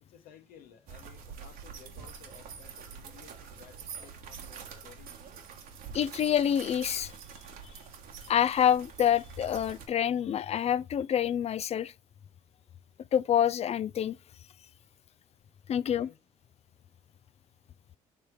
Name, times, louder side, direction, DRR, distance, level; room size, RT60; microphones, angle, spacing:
voice 1, 0.0-5.2 15.8-16.2, left 9 dB, 80° left, 1.0 m, -56 dB
sound 1, 0.9-9.9, right 7 dB, 75° right, 1.4 m, -46 dB
voice 2, 5.9-7.1 8.3-11.9 13.1-14.2 15.7-16.1, left 9 dB, 45° left, 0.4 m, -27 dB
7.1 x 3.4 x 4.8 m
supercardioid pair, 80°, 15 cm